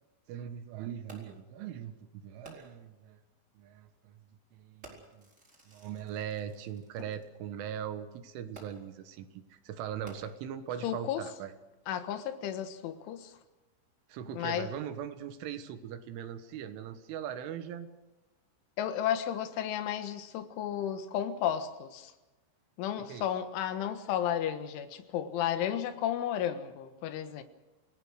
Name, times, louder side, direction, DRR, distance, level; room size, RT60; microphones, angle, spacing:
voice 1, 0.3-3.2 3.6-4.2 4.5-5.3 5.7-11.5 14.1-17.9 23.1-23.3, right 9 dB, 75° right, 9 dB, 3.8 m, -40 dB
Fireworks, 1.1-1.5 2.4-2.9 3.8-4.0 4.8-7.3 8.5-9.0 9.9-10.7 11.4-11.5, right 2 dB, 15° right, 4.3 m, -54 dB
voice 2, 10.8-11.3 11.9-13.4 14.3-14.7 18.8-22.1 22.8-27.4, left 10 dB, 75° left, 9 dB, 3.8 m, -33 dB
27.0 x 19.0 x 6.4 m, 1.1 s
omnidirectional pair, 5.8 m